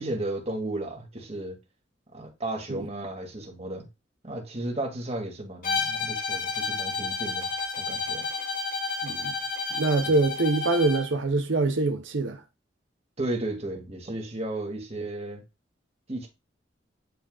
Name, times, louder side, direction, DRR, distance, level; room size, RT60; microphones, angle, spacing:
voice 1, 0.0-1.6 2.1-3.9 4.2-7.5 7.8-8.3 13.2-15.4 16.1-16.3, right 2 dB, 35° right, 2.3 m, -34 dB
Bowed string instrument, 5.6-11.1, left 4 dB, 50° left, 2.0 m, -31 dB
voice 2, 9.0-9.3 9.7-12.4, right 3 dB, 90° right, 0.8 m, -24 dB
10.0 x 4.7 x 2.4 m
head